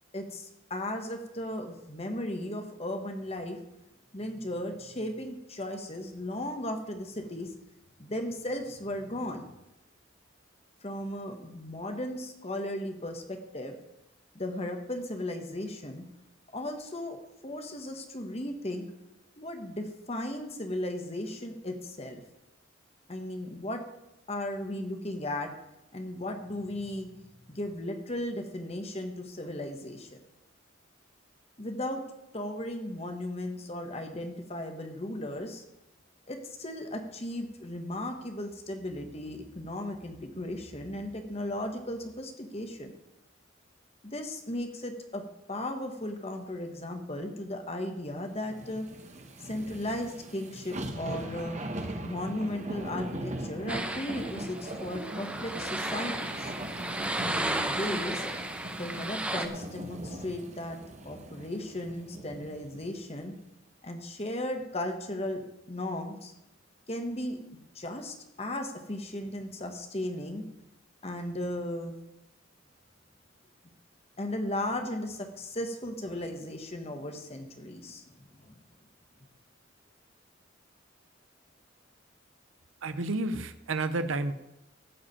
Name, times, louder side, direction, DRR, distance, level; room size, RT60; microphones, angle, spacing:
voice 1, 0.1-3.6 4.1-7.5 8.0-9.5 10.8-13.8 14.3-16.0 16.5-18.9 19.4-22.2 23.1-23.8 24.3-25.5 25.9-27.1 27.5-30.2 31.6-32.0 32.3-35.6 36.3-42.9 44.0-45.2 45.5-48.9 49.4-51.6 52.0-56.5 57.2-58.3 58.8-60.8 61.0-63.3 63.8-66.3 66.9-67.4 67.7-70.4 71.0-71.9 74.2-78.6, left 1 dB, 30° left, 5 dB, 1.4 m, -36 dB
sound 1, 48.4-62.9 63.3-63.4, right 1 dB, 35° right, 1.4 m, -40 dB
sound 2, 53.7-59.5, right 1 dB, 5° right, 0.8 m, -34 dB
voice 2, 82.8-84.3, right 2 dB, 85° right, 11 dB, 0.7 m, -30 dB
14.5 x 5.1 x 8.5 m, 0.91 s
head